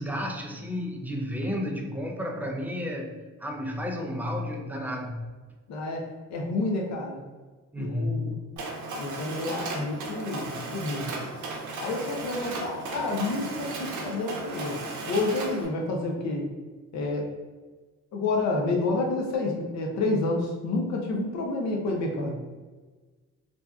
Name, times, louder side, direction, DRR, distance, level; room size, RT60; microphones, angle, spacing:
voice 1, 0.0-3.1 3.4-5.2 7.7-8.4, left 1 dB, 5° right, 1 dB, 0.3 m, -32 dB
voice 2, 5.7-6.1 6.3-7.2 7.8-8.4 9.0-11.3 11.8-14.8 15.1-16.5 16.9-17.3 18.1-22.4, left 2 dB, 65° left, 0 dB, 0.6 m, -29 dB
Mechanisms, 8.6-15.7, right 2 dB, 75° right, 0.6 m, -35 dB
2.6 x 2.2 x 2.3 m, 1.3 s
cardioid pair, 90°, 30 cm